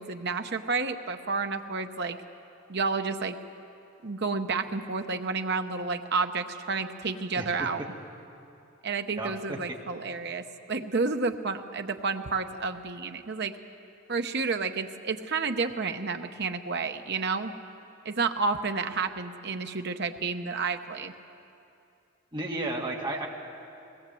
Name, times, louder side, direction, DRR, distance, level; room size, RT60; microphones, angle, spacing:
voice 1, 0.0-2.2 2.7-3.4 4.0-7.8 8.8-13.5 14.1-17.5 18.0-21.1, right 4 dB, 50° right, 7 dB, 0.9 m, -30 dB
voice 2, 7.4-7.7 9.2-9.6 22.3-23.3, right 2 dB, 20° right, -1 dB, 2.0 m, -33 dB
20.5 x 18.5 x 7.7 m, 2.7 s
head